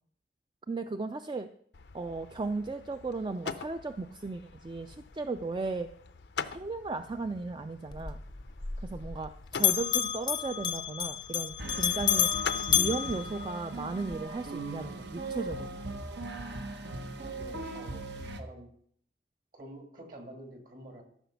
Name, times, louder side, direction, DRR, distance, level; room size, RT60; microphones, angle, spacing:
voice 1, 0.7-1.5 1.9-5.9 6.4-8.2 8.8-12.3 12.7-15.7, right 3 dB, 25° right, 9 dB, 0.3 m, -36 dB
sound 1, 1.7-14.3, left 6 dB, 80° left, 0.6 m, -45 dB
Bell, 7.9-9.3 9.5-14.0, left 9 dB, 25° left, 0.5 m, -30 dB
sound 2, 11.6-18.4, right 2 dB, 85° right, 1.1 m, -39 dB
voice 2, 17.1-18.1 18.4-18.7 19.5-21.0, right 1 dB, 50° right, 3 dB, 1.9 m, -48 dB
13.5 x 5.9 x 5.8 m, 0.65 s
head